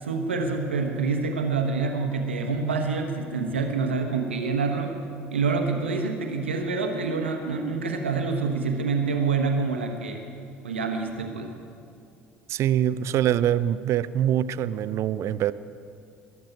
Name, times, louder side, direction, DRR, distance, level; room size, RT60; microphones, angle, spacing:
voice 1, 0.0-5.0 5.3-10.2 10.6-11.5, right 4 dB, 80° right, 3 dB, 1.2 m, -27 dB
voice 2, 12.5-15.5, right 11 dB, 50° right, 16 dB, 0.5 m, -24 dB
20.5 x 7.5 x 9.2 m, 2.4 s
figure-of-eight pair, 55°, 6 cm